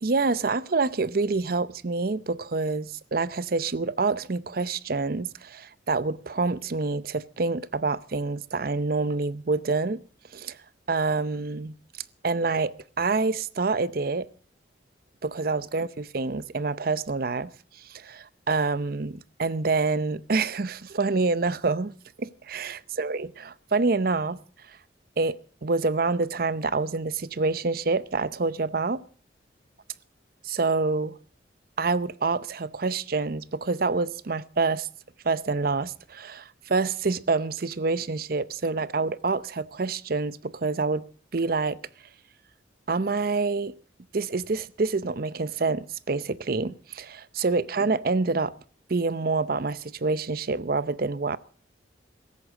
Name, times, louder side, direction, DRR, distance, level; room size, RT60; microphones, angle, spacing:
voice 1, 0.0-10.0 10.3-10.6 10.9-11.8 12.2-14.3 15.2-17.5 17.8-21.9 22.2-24.4 24.7-24.8 25.2-25.4 25.6-29.0 30.4-31.2 31.8-34.9 35.2-41.0 41.3-41.8 42.9-43.7 44.1-48.5 48.9-51.4, right 3 dB, 50° right, 0.6 m, -27 dB
17.0 x 14.0 x 4.8 m
head